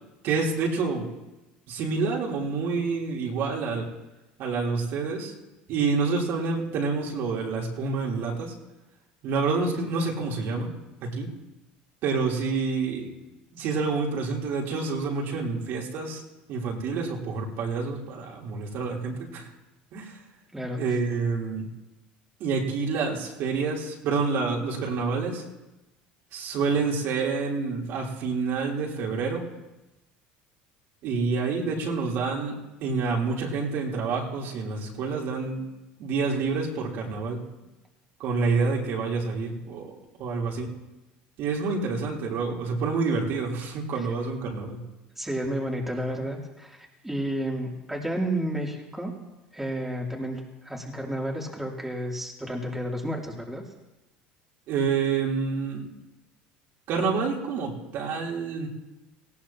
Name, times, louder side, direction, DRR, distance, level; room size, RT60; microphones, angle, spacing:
voice 1, 0.2-1.1 1.7-3.9 4.4-5.3 5.7-8.5 9.2-10.7 11.0-11.3 12.0-13.1 13.5-16.2 16.5-19.5 19.9-20.2 20.8-21.7 22.4-25.4 26.3-29.4 31.0-35.6 36.0-37.4 38.2-40.7 41.4-44.8 54.7-55.9 56.9-58.7, right 4 dB, 60° right, -2 dB, 3.5 m, -28 dB
voice 2, 45.2-49.1 49.5-53.6, right 1 dB, 5° right, -2 dB, 2.9 m, -31 dB
18.5 x 16.5 x 2.9 m, 1.0 s
supercardioid pair, 95°, 4 cm